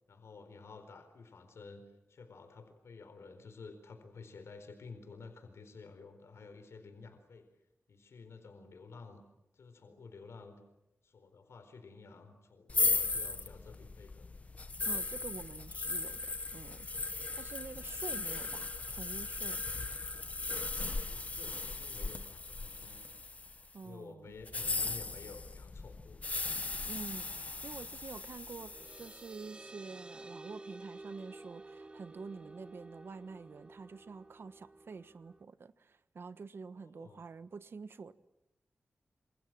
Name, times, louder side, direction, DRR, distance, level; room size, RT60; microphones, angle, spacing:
voice 1, 0.1-1.8 2.1-7.5 7.9-9.2 9.5-10.6 11.0-14.3 21.0-23.1 23.8-26.4 36.8-37.2, left 4 dB, 85° left, 7 dB, 4.3 m, -52 dB
sound 1, 12.7-23.7 24.4-29.2, left 3 dB, 30° left, 1.4 m, -37 dB
voice 2, 14.8-19.6 23.7-24.3 26.8-38.1, right 5 dB, 60° right, 13 dB, 1.4 m, -48 dB
sound 2, 28.3-35.4, right 2 dB, 25° right, 1.3 m, -52 dB
27.5 x 27.0 x 7.6 m, 0.91 s
wide cardioid pair, 135°, 4 cm